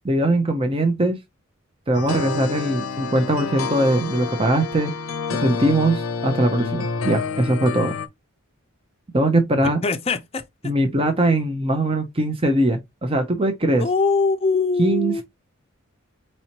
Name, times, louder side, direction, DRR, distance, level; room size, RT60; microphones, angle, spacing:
voice 1, 0.0-1.2 1.9-4.9 5.3-7.9 9.1-9.8 10.6-13.8 14.8-15.2, right 1 dB, 25° right, 0.7 m, -21 dB
sound 1, 1.9-8.1, left 4 dB, 75° left, 0.6 m, -28 dB
voice 2, 9.8-10.4 13.7-15.2, left 4 dB, 30° left, 0.5 m, -22 dB
4.3 x 4.2 x 2.9 m
head